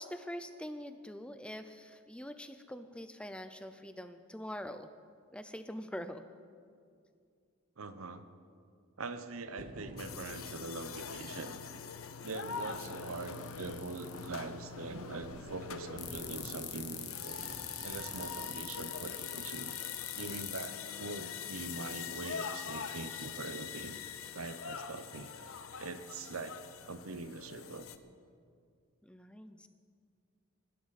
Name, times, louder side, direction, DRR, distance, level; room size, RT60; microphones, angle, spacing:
voice 1, 0.0-4.9 5.3-6.2 29.0-29.7, equal, 5° left, 9 dB, 0.5 m, -44 dB
voice 2, 7.8-8.2 9.0-11.6 12.2-17.4 17.8-19.8 20.2-24.0 24.3-25.3 25.8-26.6 26.9-27.9, right 3 dB, 85° right, 11 dB, 0.9 m, -43 dB
sound 1, 9.6-18.5, right 1 dB, 40° right, 1.6 m, -52 dB
sound 2, 10.0-28.0, left 6 dB, 85° left, 0.8 m, -44 dB
sound 3, 12.3-14.3 16.0-20.7 21.5-23.4, left 12 dB, 55° left, 1.4 m, -44 dB
25.0 x 12.0 x 4.2 m, 2.3 s
head